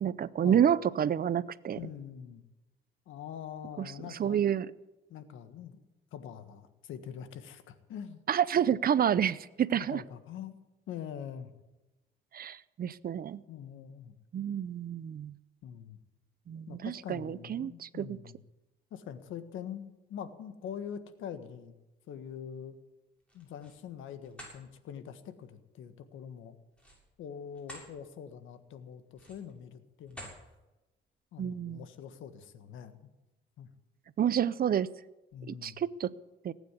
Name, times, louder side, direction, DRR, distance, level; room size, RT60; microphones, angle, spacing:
voice 1, 0.0-1.8 3.8-3.9 4.2-4.7 8.3-10.0 12.3-13.4 14.3-15.3 16.5-18.2 31.4-31.8 34.2-34.9 35.5-36.1 36.4-36.5, right 9 dB, 50° right, 18 dB, 0.6 m, -29 dB
voice 2, 1.8-2.4 3.1-4.4 5.1-5.8 6.1-8.2 9.8-10.6 10.9-11.5 13.5-14.1 15.6-16.0 16.7-18.4 18.9-21.7 22.1-22.8 23.3-26.6 27.2-30.3 31.3-33.1 33.6-33.7 35.3-35.8, left 8 dB, 80° left, 10 dB, 1.5 m, -44 dB
sound 1, 23.2-23.8 24.2-24.6 26.7-27.9 28.4-28.5 29.1-29.6 30.1-30.4, equal, 5° left, 7.1 m, -49 dB
19.0 x 9.2 x 8.2 m, 1.0 s
cardioid pair, 90°, 20 cm